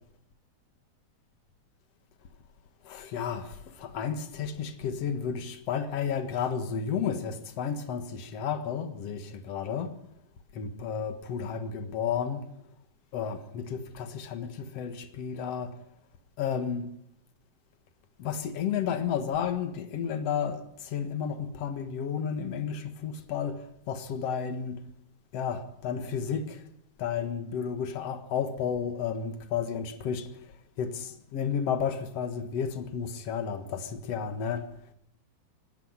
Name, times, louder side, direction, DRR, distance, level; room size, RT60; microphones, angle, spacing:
voice 1, 2.8-9.9 10.5-12.5 13.1-15.8 16.4-17.0 18.2-24.8 25.3-26.7 27.0-34.9, left 7 dB, 60° left, 1.7 m, -32 dB
20.0 x 15.0 x 9.7 m
omnidirectional pair, 5.1 m